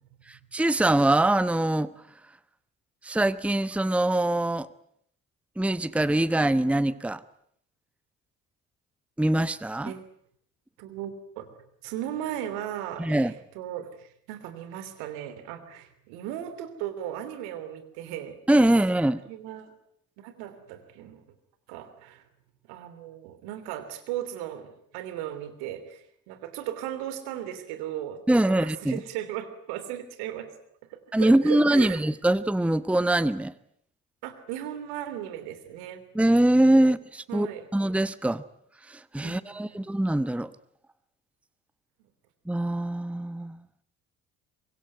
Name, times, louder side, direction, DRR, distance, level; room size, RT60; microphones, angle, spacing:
voice 1, 0.3-1.9 3.0-4.7 5.6-7.2 9.2-9.9 13.0-13.3 18.5-19.2 28.3-29.0 31.1-33.5 36.1-37.5 37.7-38.4 38.9-40.5 42.5-43.6, right 1 dB, 5° right, 1.0 m, -23 dB
voice 2, 10.8-11.5 11.8-18.4 19.3-19.7 20.2-21.2 21.7-22.2 22.7-28.2 28.5-30.5 30.9-32.0 34.2-36.0 37.3-37.7 39.2-39.8, right 11 dB, 70° right, 3.1 m, -36 dB
24.5 x 21.5 x 9.4 m
figure-of-eight pair, 45°, 40 cm